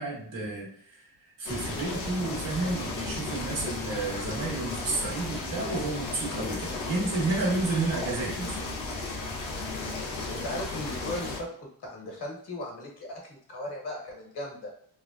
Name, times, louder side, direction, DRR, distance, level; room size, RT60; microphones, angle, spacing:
voice 1, 0.0-8.6, right 3 dB, 85° right, -4 dB, 1.3 m, -31 dB
sound 1, 1.4-11.4, left 3 dB, 90° left, 0.8 m, -34 dB
voice 2, 9.6-9.9 10.3-11.5 11.8-14.7, left 1 dB, 60° left, -1 dB, 1.4 m, -37 dB
3.4 x 2.2 x 2.4 m, 0.63 s
cardioid pair, 65°, 45 cm